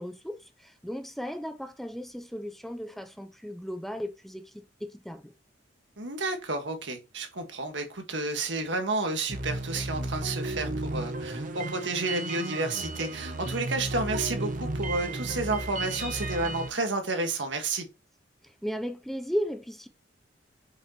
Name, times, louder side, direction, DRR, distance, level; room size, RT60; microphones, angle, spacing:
voice 1, 0.0-5.3 18.4-19.9, equal, ahead, 0.5 m, -36 dB
voice 2, 6.0-17.8, right 3 dB, 80° right, 1.6 m, -31 dB
sound 1, 9.3-16.7, right 2 dB, 45° right, 1.0 m, -34 dB
6.5 x 5.6 x 3.0 m
head